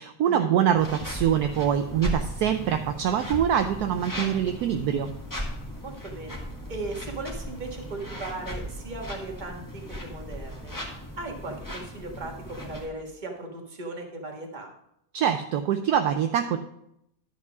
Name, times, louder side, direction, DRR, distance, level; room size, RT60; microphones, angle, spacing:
voice 1, 0.0-5.1 15.1-16.6, right 9 dB, 70° right, 7 dB, 1.0 m, -24 dB
sound 1, 0.8-12.9, equal, 10° left, 1.3 m, -37 dB
voice 2, 5.8-6.4 6.7-10.7 11.2-14.7, right 2 dB, 30° right, 1 dB, 1.5 m, -37 dB
11.0 x 4.8 x 5.9 m, 0.77 s
omnidirectional pair, 1.9 m